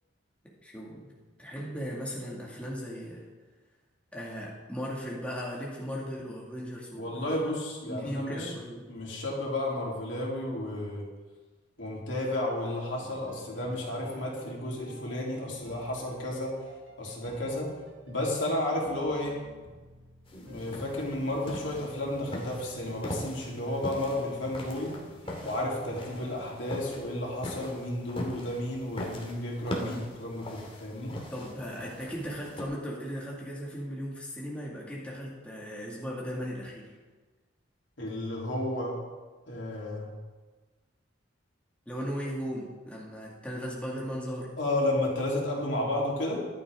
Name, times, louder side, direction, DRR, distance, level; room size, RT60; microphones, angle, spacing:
voice 1, 0.6-1.1 1.4-3.3 4.1-7.4 7.9-8.8 29.8-30.1 31.3-37.0 41.9-44.6, equal, 5° left, -4 dB, 2.3 m, -37 dB
voice 2, 7.0-8.5 8.9-11.1 11.8-16.6 17.0-17.7 18.1-19.4 20.5-24.9 25.4-31.2 38.0-39.0 39.5-40.1 44.6-46.5, left 1 dB, 70° left, -3 dB, 3.5 m, -32 dB
sound 1, 13.0-26.5, right 1 dB, 70° right, 1.7 m, -50 dB
sound 2, 20.3-32.6, left 1 dB, 30° left, 2.2 m, -42 dB
15.0 x 11.5 x 3.8 m, 1.3 s
head